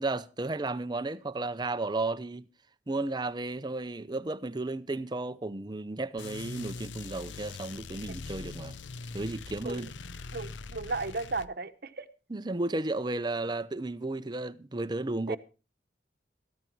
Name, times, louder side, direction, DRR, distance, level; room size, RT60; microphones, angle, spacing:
voice 1, 0.0-2.5 2.9-8.7 9.1-9.9 12.3-15.4, right 2 dB, 25° right, 0.6 m, -33 dB
sound 1, 6.2-11.5, left 4 dB, 90° left, 0.6 m, -42 dB
voice 2, 10.3-12.1 15.3-15.4, right 3 dB, 55° right, 1.0 m, -35 dB
14.0 x 13.5 x 4.5 m
head